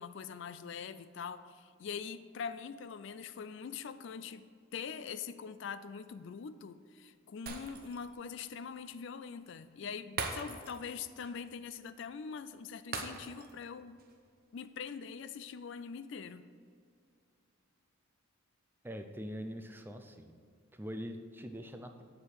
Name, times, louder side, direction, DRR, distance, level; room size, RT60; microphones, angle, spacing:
voice 1, 0.0-4.5 4.7-14.0 14.5-16.4, left 6 dB, 55° left, 13 dB, 0.3 m, -43 dB
Shatter, 7.5-8.2 8.5-8.6 10.2-10.9 11.2-11.4 12.9-13.6 14.0-14.1, right 4 dB, 45° right, 0.8 m, -41 dB
voice 2, 18.8-20.3 20.7-22.0, equal, 10° right, 6 dB, 0.4 m, -43 dB
8.0 x 4.9 x 7.2 m, 2.3 s
head